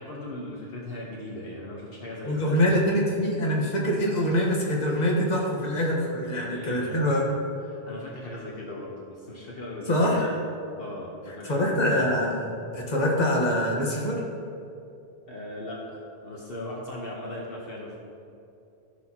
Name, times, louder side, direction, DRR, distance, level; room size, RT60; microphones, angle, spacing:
voice 1, 0.0-2.8 6.4-7.0 7.6-10.3 10.8-11.9 15.3-18.0, left 1 dB, 60° left, -3 dB, 1.4 m, -38 dB
voice 2, 2.2-7.2 9.9-10.3 11.4-14.2, equal, 40° left, -2 dB, 1.5 m, -24 dB
16.0 x 6.6 x 3.0 m, 2.7 s
omnidirectional pair, 1.1 m